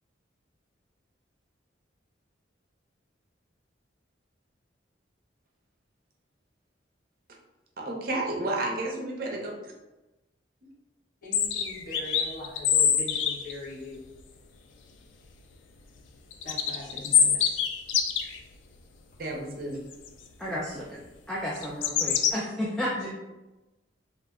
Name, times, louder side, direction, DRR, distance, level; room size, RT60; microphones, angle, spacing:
voice 1, 7.8-9.7 19.2-19.8, right 2 dB, 50° right, -1 dB, 0.6 m, -31 dB
voice 2, 11.2-14.0 16.4-17.6, left 1 dB, 45° left, -6 dB, 0.9 m, -41 dB
sound 1, 11.3-13.5 16.3-18.4 19.9-20.1 21.6-22.3, left 8 dB, 80° left, 0.3 m, -24 dB
voice 3, 20.4-23.2, equal, 5° left, -7 dB, 0.3 m, -33 dB
2.5 x 2.0 x 3.5 m, 1.0 s
head